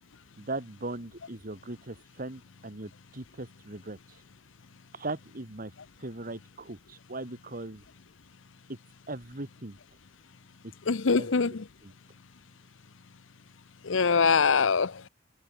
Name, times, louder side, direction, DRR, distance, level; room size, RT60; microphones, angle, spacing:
voice 1, 0.4-4.2 4.9-7.8 9.1-9.8 11.2-11.3, right 2 dB, 45° right, 2.2 m, -39 dB
voice 2, 10.9-11.7 13.8-15.1, left 5 dB, 75° left, 0.8 m, -24 dB
head